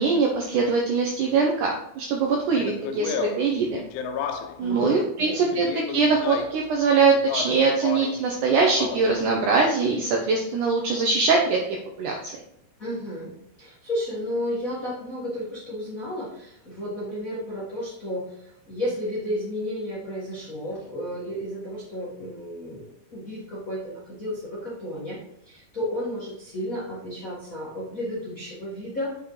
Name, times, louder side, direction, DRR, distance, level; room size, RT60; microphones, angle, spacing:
voice 1, 0.0-3.8 4.6-11.6 12.0-12.3, right 4 dB, 80° right, 1 dB, 1.8 m, -22 dB
Speech, 2.5-4.7 5.5-6.7 7.1-8.2 8.6-9.3, left 6 dB, 80° left, 2.3 m, -32 dB
voice 2, 4.6-5.5 12.8-13.3 13.6-29.2, equal, 40° left, -8 dB, 1.2 m, -32 dB
6.4 x 5.4 x 3.1 m, 0.80 s
omnidirectional pair, 4.4 m